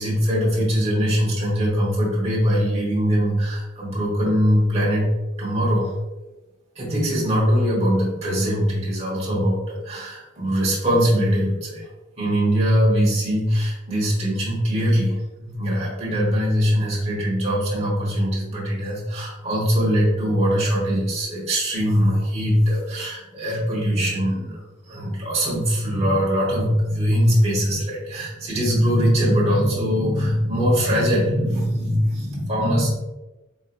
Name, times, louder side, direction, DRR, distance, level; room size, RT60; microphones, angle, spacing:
voice 1, 0.0-5.1 5.4-5.9 6.8-11.9 12.2-32.9, equal, 30° right, -6 dB, 1.1 m, -21 dB
4.1 x 2.8 x 2.5 m, 1.1 s
head